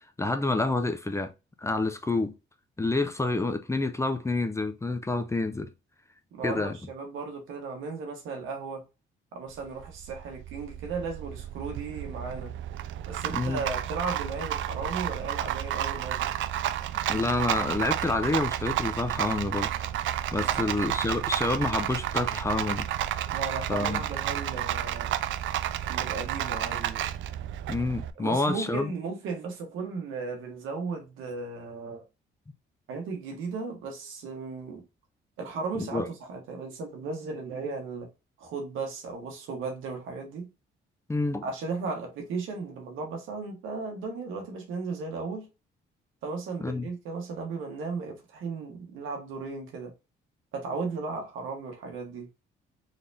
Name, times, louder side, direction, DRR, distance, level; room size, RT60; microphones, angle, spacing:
voice 1, 0.2-1.3 1.6-2.3 2.8-5.7 6.4-6.8 13.3-13.6 17.1-19.7 20.3-22.9 23.7-24.0 27.7-28.9 35.8-36.1 41.1-41.5 46.6-46.9, left 2 dB, 15° left, 0.5 m, -28 dB
voice 2, 6.3-8.8 9.3-12.5 13.1-16.3 20.4-20.7 23.3-25.1 25.8-27.1 28.2-32.0 32.9-34.8 35.4-38.1 38.4-40.5 41.4-45.5 46.2-49.9 50.5-52.3, right 4 dB, 90° right, 1.5 m, -36 dB
Rattle, 9.5-28.1, right 12 dB, 75° right, 0.4 m, -31 dB
4.0 x 3.3 x 2.7 m
cardioid pair, 90°, 20 cm